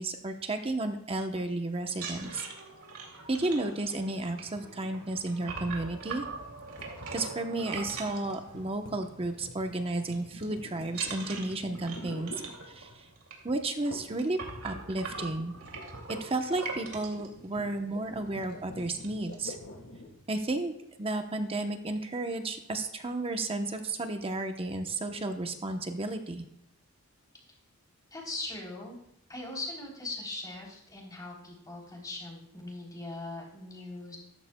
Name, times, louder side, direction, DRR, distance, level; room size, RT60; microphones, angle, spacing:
voice 1, 0.0-2.5 3.3-6.2 7.1-12.3 12.7-13.0 13.4-15.5 16.1-19.6 20.3-20.7 21.0-26.4, right 2 dB, 25° right, 5 dB, 0.9 m, -33 dB
sound 1, 1.9-9.0 9.3-9.6 9.9-10.4 10.9-17.3 17.9-18.0 18.4-18.5 18.8-19.3, right 4 dB, 85° right, 2.6 m, -42 dB
sound 2, 6.8-13.1 13.9-14.3 14.5-20.2, left 1 dB, 65° left, 1.5 m, -48 dB
voice 2, 28.1-29.0 29.3-34.2, left 2 dB, 20° left, -2 dB, 3.4 m, -40 dB
14.0 x 13.5 x 2.3 m, 0.76 s
head